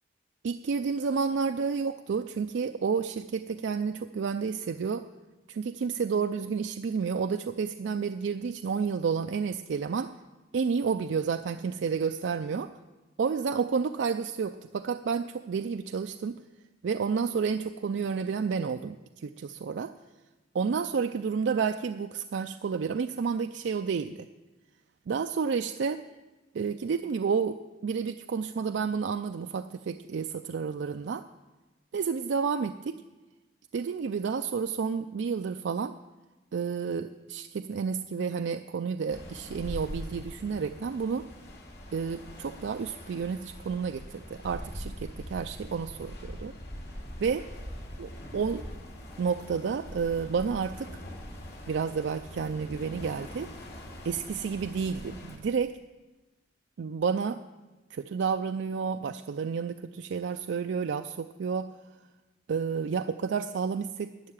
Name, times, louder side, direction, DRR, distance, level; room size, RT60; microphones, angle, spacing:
voice 1, 0.4-5.1 5.5-10.1 10.5-12.7 13.2-16.4 16.8-19.9 20.5-24.3 25.1-26.0 26.5-31.3 31.9-33.0 33.7-36.0 36.5-41.3 41.9-46.5 47.2-47.5 48.0-48.7 49.2-51.0 51.7-53.5 54.0-55.8 56.8-57.4 57.9-61.7 62.5-64.1, right 5 dB, 65° right, 8 dB, 0.4 m, -30 dB
sound 1, 39.1-55.4, equal, 60° left, 2.4 m, -43 dB
12.0 x 6.7 x 8.8 m, 1.2 s
head